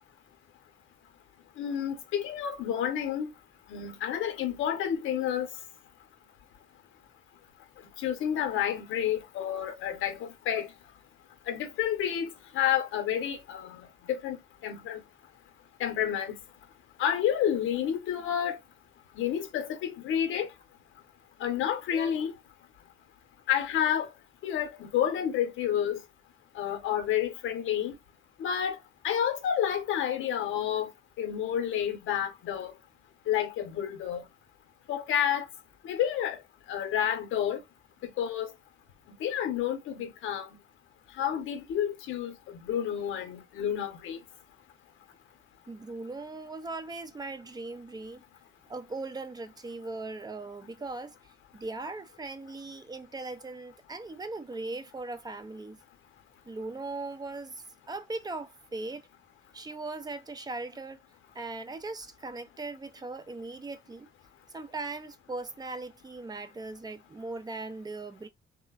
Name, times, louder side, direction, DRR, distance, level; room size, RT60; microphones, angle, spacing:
voice 1, 1.6-3.3 3.7-5.5 8.0-10.7 11.5-14.4 14.6-15.0 15.8-16.3 17.0-18.6 19.2-20.5 21.4-22.3 23.5-24.1 24.4-26.0 26.6-27.9 28.4-28.8 29.0-30.9 31.2-32.7 33.3-34.2 34.9-35.5 35.8-36.4 36.7-37.6 38.0-38.5 39.2-40.5 41.2-44.2, left 9 dB, 85° left, 0.8 m, -30 dB
voice 2, 45.7-48.2 48.7-51.1 51.5-55.8 56.5-59.0 59.5-61.0 61.3-64.1 64.5-68.3, right 3 dB, 20° right, 0.5 m, -39 dB
3.3 x 2.1 x 2.3 m
cardioid pair, 90°, 20 cm